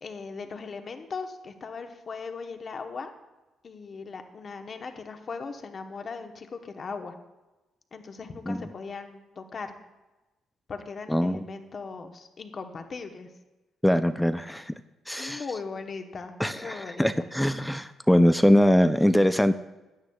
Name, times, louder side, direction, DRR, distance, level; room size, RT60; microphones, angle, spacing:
voice 1, 0.0-3.1 3.6-7.2 7.9-9.7 10.7-13.3 15.2-17.3, left 4 dB, 45° left, 6 dB, 1.0 m, -38 dB
voice 2, 11.1-11.5 13.8-14.7 15.1-15.4 16.4-19.5, equal, 5° left, 10 dB, 0.4 m, -22 dB
15.0 x 9.5 x 2.3 m, 1.1 s
cardioid pair, 90°, 0 cm